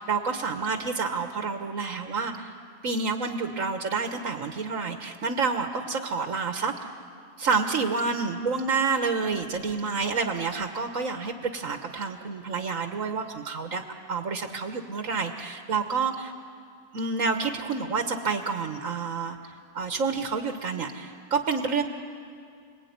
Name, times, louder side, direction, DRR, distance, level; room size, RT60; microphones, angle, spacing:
voice 1, 0.0-2.5 2.8-6.7 7.4-16.3 16.9-21.8, right 4 dB, 70° right, 5 dB, 1.7 m, -29 dB
29.5 x 21.0 x 9.6 m, 2.3 s
omnidirectional pair, 1.5 m